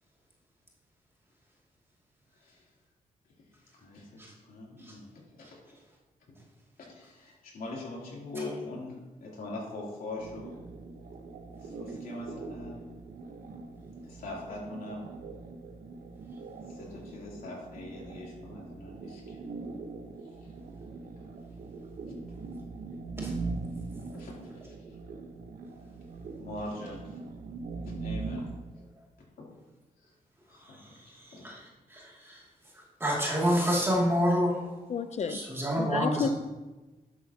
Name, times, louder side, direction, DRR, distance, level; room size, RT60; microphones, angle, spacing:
voice 1, 3.8-5.6 6.8-8.9 9.2-10.5 11.6-12.8 14.1-15.1 16.7-19.4 20.4-20.5 22.1-22.2 24.1-24.3 24.6-25.0 26.4-27.2 27.8-28.4 29.2-29.5 30.0-30.1 30.5-31.4, left 2 dB, 80° left, -5 dB, 3.2 m, -42 dB
sound 1, 10.2-28.6, right 3 dB, 70° right, 1.0 m, -41 dB
voice 2, 31.9-32.4 33.0-34.6 35.3-36.3, equal, 15° right, -5 dB, 2.5 m, -27 dB
voice 3, 34.9-35.4 35.8-36.3, left 6 dB, 50° left, 12 dB, 0.6 m, -31 dB
11.5 x 7.9 x 2.9 m, 1.2 s
cardioid pair, 105°, 15 cm